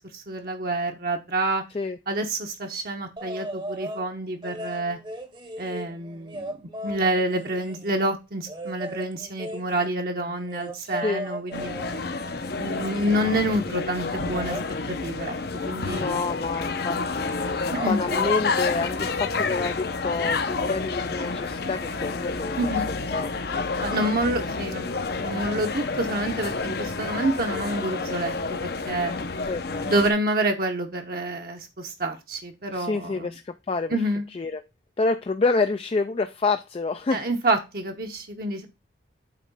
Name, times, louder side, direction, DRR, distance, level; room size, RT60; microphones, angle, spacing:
voice 1, 0.0-1.6 2.1-5.0 5.6-11.7 12.6-14.5 14.9-15.4 15.6-16.2 17.8-18.0 22.6-22.9 23.8-29.1 29.8-33.3 33.9-34.3 37.1-38.7, right 1 dB, 50° right, 0.9 m, -28 dB
sound 1, 3.2-4.1 4.4-8.0 8.5-13.3 14.2-14.7 16.5-16.7 17.0-17.4 17.7-18.4 19.8-19.9, right 1 dB, 25° right, 0.9 m, -37 dB
voice 2, 10.8-11.2 15.9-22.7 23.1-23.7 29.1-29.9 32.7-34.0 34.3-34.6 35.0-37.3, left 3 dB, 30° left, 0.3 m, -28 dB
sound 2, 11.5-30.1, left 4 dB, 55° left, 0.7 m, -29 dB
8.4 x 3.1 x 5.4 m
head